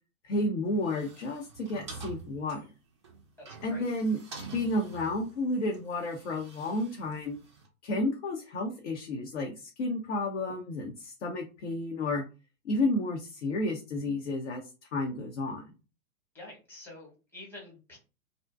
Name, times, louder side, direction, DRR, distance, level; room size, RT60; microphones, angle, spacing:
voice 1, 0.2-2.6 3.6-4.2 4.5-7.4 7.8-12.2 12.6-14.6 14.9-15.6, left 2 dB, 55° left, 1 dB, 0.6 m, -31 dB
sound 1, 0.7-7.7, right 4 dB, 25° right, 0.3 m, -48 dB
voice 2, 16.3-18.0, left 2 dB, 5° left, -4 dB, 0.9 m, -47 dB
2.5 x 2.1 x 2.3 m, 0.31 s
figure-of-eight pair, 105°, 43 cm